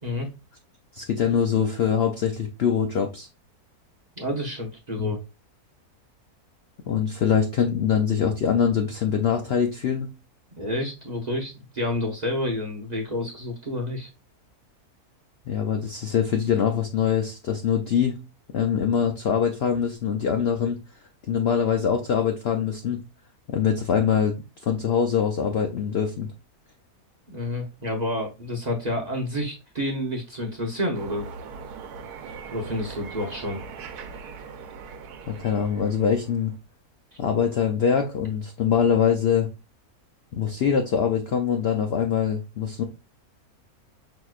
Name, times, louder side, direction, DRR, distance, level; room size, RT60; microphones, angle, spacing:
voice 1, 0.9-3.3 5.0-5.2 6.9-10.1 15.5-18.2 18.5-20.8 21.3-23.0 23.5-24.4 24.6-26.3 35.3-36.5 37.2-39.5 40.3-42.8, left 7 dB, 65° left, 4 dB, 0.6 m, -23 dB
voice 2, 4.2-5.2 10.6-14.1 27.3-31.3 32.5-33.6, left 1 dB, 35° right, -1 dB, 0.7 m, -29 dB
sound 1, 30.9-36.6, right 5 dB, 90° right, 1.2 m, -40 dB
6.1 x 2.9 x 2.3 m, 0.27 s
omnidirectional pair, 1.6 m